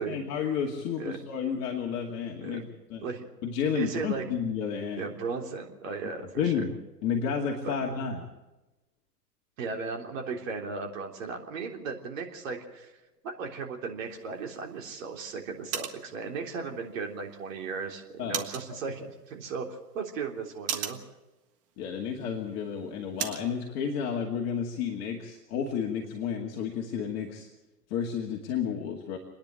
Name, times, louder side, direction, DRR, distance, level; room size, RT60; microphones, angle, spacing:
voice 1, 0.0-3.0 3.4-5.1 6.0-6.7 7.0-8.3 18.2-18.4 18.7-18.8 21.8-27.5 27.9-29.2, left 7 dB, 35° left, -1 dB, 2.3 m, -31 dB
voice 2, 3.7-4.2 5.0-6.5 7.6-7.7 9.6-12.9 13.2-19.7 19.9-21.0, right 5 dB, 55° right, 2 dB, 3.6 m, -36 dB
sound 1, 14.1-23.5, right 9 dB, 30° right, 1.6 m, -41 dB
28.0 x 10.5 x 8.9 m, 1.0 s
figure-of-eight pair, 110°, 48 cm